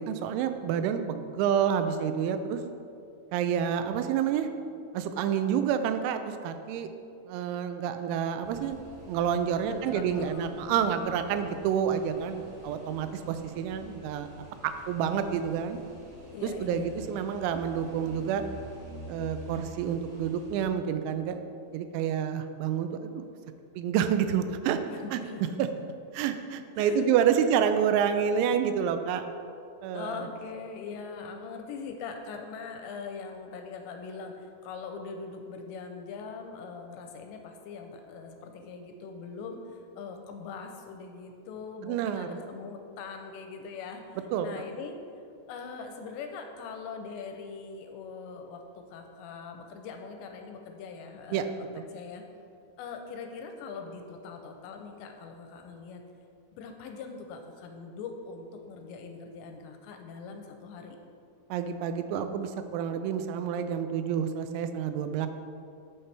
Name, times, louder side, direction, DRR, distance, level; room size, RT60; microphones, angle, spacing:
voice 1, 0.0-2.6 3.3-4.5 4.9-6.9 7.3-8.8 9.1-14.3 14.6-15.8 16.4-18.4 19.1-21.4 21.7-23.2 23.8-24.8 25.1-25.2 25.6-25.7 26.1-29.3 29.8-30.3 41.8-42.4 44.3-44.5 51.3-51.5 51.8-51.9 61.5-65.3, right 8 dB, 85° right, 9 dB, 2.9 m, -28 dB
sound 1, 8.4-20.7, left 1 dB, 45° right, 2.9 m, -48 dB
voice 2, 9.7-10.8 16.3-17.1 24.9-25.6 26.8-27.1 27.3-27.5 29.9-45.0 45.5-52.2 52.8-56.0 56.5-61.0, left 5 dB, 85° left, 4 dB, 2.7 m, -42 dB
12.0 x 5.8 x 3.3 m, 2.5 s
omnidirectional pair, 5.3 m